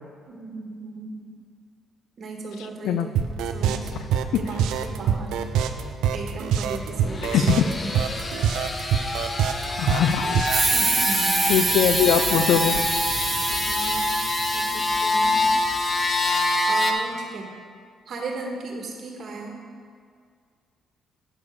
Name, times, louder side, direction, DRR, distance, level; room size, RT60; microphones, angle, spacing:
voice 1, 0.3-1.3 2.2-3.2 3.5-4.0 4.3-5.4 6.1-7.9 8.7-9.2 10.7-11.4 13.5-14.1 14.5-15.4 16.7-17.5 18.1-19.6, right 3 dB, 55° right, 0 dB, 1.6 m, -36 dB
sound 1, 3.2-10.7, right 8 dB, 90° right, 0.5 m, -25 dB
sound 2, 7.0-16.9, left 2 dB, 30° left, 0.9 m, -26 dB
voice 2, 7.3-7.6 9.8-10.5 11.5-12.8, left 9 dB, 85° left, 10 dB, 0.3 m, -21 dB
sound 3, 10.5-15.8, right 4 dB, 40° right, 1.7 m, -26 dB
8.5 x 6.9 x 4.8 m, 2.1 s
cardioid pair, 90°, 0 cm